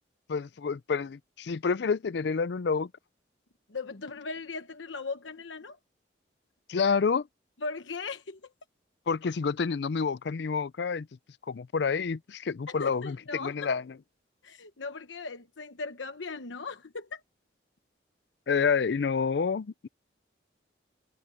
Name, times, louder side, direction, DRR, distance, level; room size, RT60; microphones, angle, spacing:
voice 1, 0.3-2.9 6.7-7.3 9.1-11.1 11.5-13.8 18.5-19.9, left 5 dB, 65° left, 0.4 m, -28 dB
voice 2, 3.7-5.8 7.6-8.5 12.7-13.7 14.4-17.2, left 4 dB, 85° left, 1.1 m, -38 dB
head